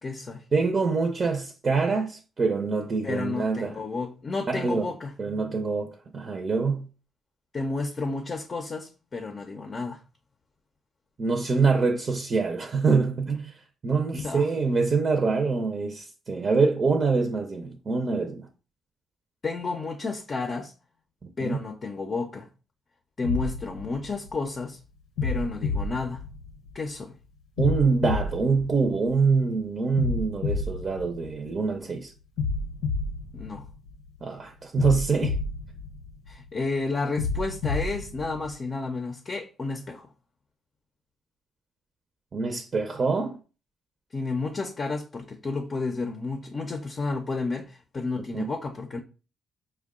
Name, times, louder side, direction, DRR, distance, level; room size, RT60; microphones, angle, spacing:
voice 1, 0.0-0.4 3.0-5.1 7.5-10.0 14.1-14.5 19.4-20.7 21.4-22.5 23.2-24.8 25.2-26.3 26.7-27.1 33.3-33.7 36.3-40.1 44.1-49.0, left 3 dB, 35° left, 0.6 m, -31 dB
voice 2, 0.5-3.8 4.5-4.9 5.2-6.9 11.2-13.6 13.8-18.5 21.2-21.6 27.6-32.1 34.2-35.4 42.3-43.4 48.3-48.5, right 4 dB, 40° right, 0.6 m, -25 dB
sound 1, 23.2-24.6 25.2-26.9 27.6-29.4 30.0-31.8 32.4-34.2 34.8-36.5 37.2-38.6, left 3 dB, 90° left, 0.7 m, -30 dB
4.5 x 2.2 x 3.6 m
cardioid pair, 80°, 0 cm